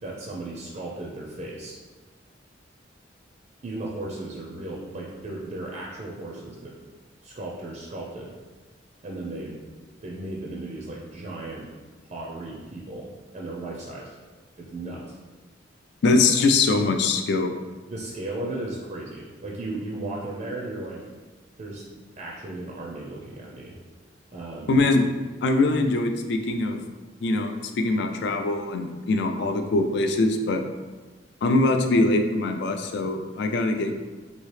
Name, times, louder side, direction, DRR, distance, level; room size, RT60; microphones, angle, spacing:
voice 1, 0.0-1.8 3.6-6.8 7.2-8.3 9.0-9.6 10.0-11.7 12.1-14.1 14.6-15.2 17.9-21.1 21.6-23.8 24.3-24.8, right 2 dB, 40° right, -3 dB, 0.4 m, -36 dB
voice 2, 16.0-17.5 24.7-25.0 25.4-26.8 27.2-30.6 31.4-34.0, left 2 dB, 65° left, 6 dB, 0.3 m, -22 dB
2.9 x 2.7 x 3.2 m, 1.3 s
head